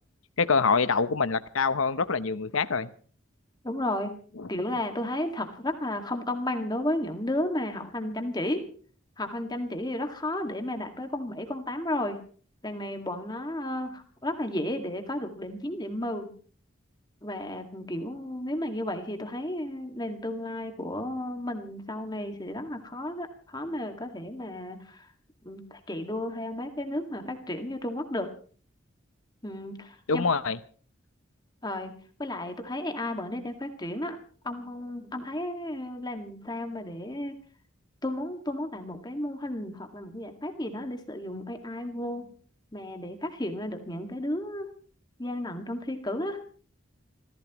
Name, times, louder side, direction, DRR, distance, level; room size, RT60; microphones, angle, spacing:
voice 1, 0.4-2.9 4.4-4.5 30.1-30.6, left 5 dB, 90° left, 13 dB, 0.9 m, -25 dB
voice 2, 3.6-4.1 4.5-8.6 9.2-12.2 12.6-16.3 17.2-25.0 25.4-28.3 29.4-30.3 31.6-34.2 34.4-37.3 38.0-42.3 42.7-44.7 45.2-46.4, left 1 dB, 20° left, 5 dB, 2.0 m, -33 dB
27.0 x 15.5 x 3.1 m, 0.43 s
head